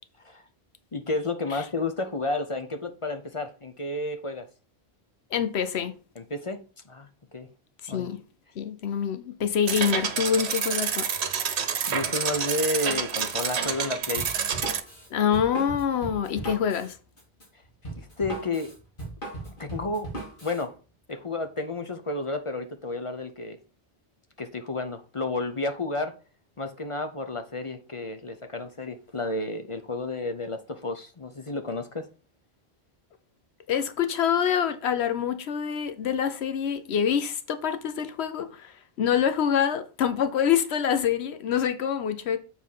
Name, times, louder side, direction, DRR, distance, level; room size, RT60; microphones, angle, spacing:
voice 1, 0.9-4.5 6.2-7.1 7.3-7.5 7.9-8.1 11.9-14.3 17.9-18.7 19.5-20.1 20.4-20.8 21.1-23.6 24.4-26.1 26.6-32.1, left 2 dB, 35° left, 0.8 m, -31 dB
voice 2, 5.3-5.9 7.8-8.2 8.6-11.1 15.1-17.0 33.7-42.4, left 8 dB, 85° left, 1.0 m, -26 dB
sound 1, 9.7-14.8, right 7 dB, 90° right, 1.1 m, -28 dB
Drum kit, 14.2-20.6, right 2 dB, 55° left, 3.0 m, -38 dB
7.2 x 4.2 x 5.6 m
omnidirectional pair, 1.1 m